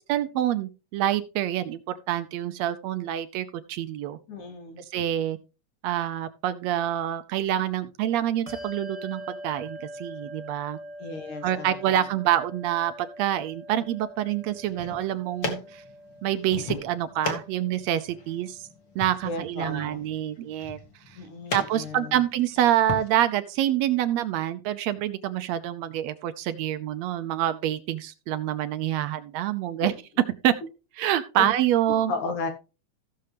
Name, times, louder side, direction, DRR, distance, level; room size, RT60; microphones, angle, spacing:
voice 1, 0.1-4.2 4.8-5.4 5.8-10.8 11.4-15.8 16.2-18.6 19.0-20.8 21.1-21.2 21.5-29.9 30.4-30.5 31.0-32.1, right 12 dB, 75° right, 12 dB, 1.7 m, -26 dB
voice 2, 4.3-4.8 11.0-12.0 19.3-20.0 21.2-22.2 29.8-29.9 31.4-31.5 31.9-32.5, left 3 dB, 85° left, 4 dB, 3.4 m, -34 dB
Bell, 8.5-18.4, equal, 15° right, 1.3 m, -43 dB
sound 1, 14.5-23.1, left 4 dB, 45° left, 2.1 m, -38 dB
15.0 x 6.6 x 3.4 m, 0.32 s
omnidirectional pair, 3.3 m